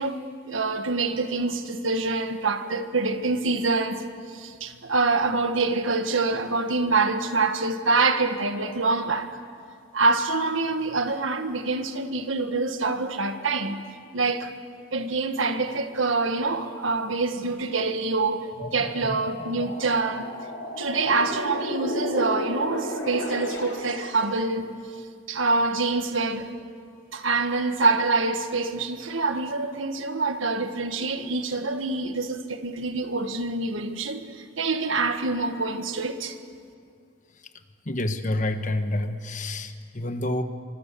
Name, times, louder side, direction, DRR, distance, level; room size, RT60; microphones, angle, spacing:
voice 1, 0.0-4.0 4.3-9.4 9.9-13.8 14.1-14.5 14.9-20.2 20.8-24.7 25.3-26.5 27.1-34.2 34.6-36.4, right 3 dB, 80° right, 1.6 m, -25 dB
sound 1, 18.5-24.3, left 1 dB, 70° left, 3.8 m, -33 dB
voice 2, 37.8-40.4, left 1 dB, 40° left, 1.3 m, -28 dB
26.5 x 25.0 x 7.0 m
head